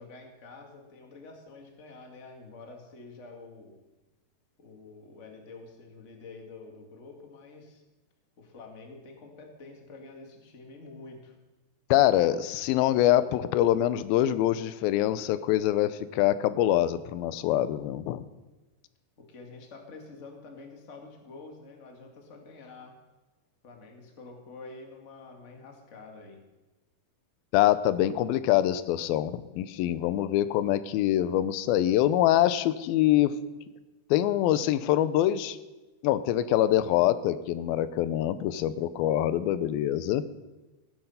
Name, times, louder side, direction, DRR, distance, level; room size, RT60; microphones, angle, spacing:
voice 1, 0.0-3.8 4.6-7.8 8.4-11.3 19.2-23.0 23.6-26.4, left 3 dB, 35° left, 2 dB, 1.1 m, -47 dB
voice 2, 11.9-18.3 27.5-33.4 34.1-35.6 36.0-40.3, left 13 dB, 80° left, 14 dB, 2.2 m, -24 dB
17.5 x 10.5 x 5.6 m, 1.1 s
omnidirectional pair, 4.8 m